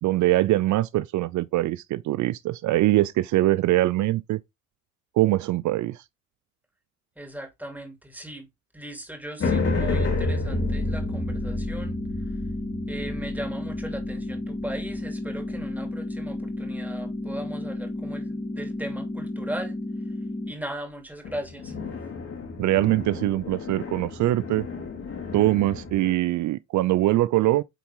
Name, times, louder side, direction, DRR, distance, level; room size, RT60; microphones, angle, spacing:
voice 1, 0.0-4.4 5.2-6.0 22.6-24.6 25.3-27.6, right 16 dB, 70° right, 0.5 m, -23 dB
voice 2, 7.2-8.5 8.7-12.0 12.9-19.8 20.5-21.8, right 1 dB, 5° right, 2.9 m, -38 dB
sound 1, 9.4-15.9 21.2-26.1, left 2 dB, 50° left, 3.1 m, -31 dB
sound 2, 10.5-20.5, left 1 dB, 15° left, 1.5 m, -33 dB
9.2 x 4.0 x 3.7 m
cardioid pair, 90°, 30 cm